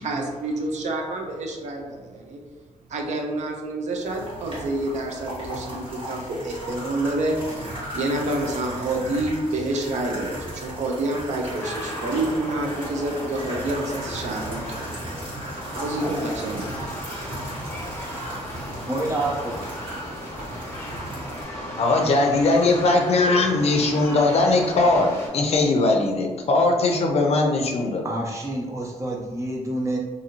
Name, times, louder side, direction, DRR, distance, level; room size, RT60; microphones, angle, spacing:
voice 1, 0.0-2.4 2.9-7.7 7.9-15.1 15.8-17.0, right 2 dB, 65° right, 1 dB, 0.5 m, -28 dB
sound 1, 4.0-21.4, right 1 dB, 45° right, 1.2 m, -37 dB
sound 2, 11.6-25.3, equal, 20° left, 0.9 m, -35 dB
voice 2, 18.8-19.7 28.0-30.0, right 1 dB, 25° right, -1 dB, 0.6 m, -28 dB
voice 3, 21.8-25.1 25.3-28.0, left 2 dB, 55° left, 2 dB, 0.5 m, -20 dB
2.6 x 2.6 x 2.8 m, 1.3 s
cardioid pair, 120°, 13 cm